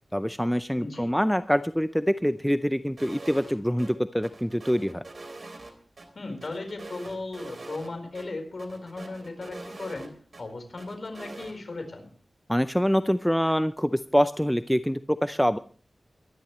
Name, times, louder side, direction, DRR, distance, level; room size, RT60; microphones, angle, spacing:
voice 1, 0.1-5.0 12.5-15.6, equal, ahead, 11 dB, 0.5 m, -25 dB
sound 1, 3.0-3.5 3.8-3.9 4.2-6.1 6.4-7.9 8.1-8.3 8.6-10.4 10.8-11.5, right 2 dB, 55° right, 3.2 m, -43 dB
voice 2, 6.1-10.1 10.4-12.1, left 2 dB, 60° left, 5 dB, 4.5 m, -36 dB
23.5 x 11.5 x 3.2 m, 0.42 s
wide cardioid pair, 85°, 0 cm